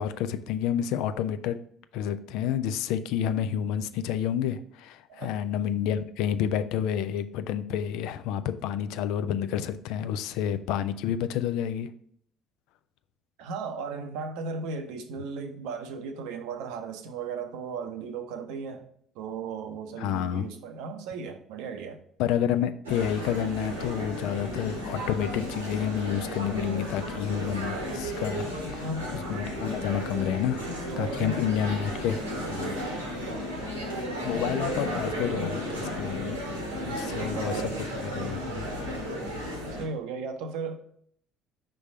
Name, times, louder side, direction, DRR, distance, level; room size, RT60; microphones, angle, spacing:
voice 1, 0.0-1.6 1.9-11.9 20.0-20.5 22.2-28.9 29.1-32.2 32.5-32.8 34.2-36.6 36.9-37.5 38.0-38.7, left 9 dB, 60° left, 11 dB, 0.3 m, -29 dB
voice 2, 13.4-18.9 19.1-22.0 28.7-29.1 30.9-31.5 32.9-33.2 37.0-37.8 39.8-40.7, right 4 dB, 65° right, 7 dB, 0.6 m, -36 dB
sound 1, 22.8-39.8, equal, 80° right, 1.1 m, -33 dB
5.3 x 3.3 x 5.6 m, 0.63 s
figure-of-eight pair, 50°, 0 cm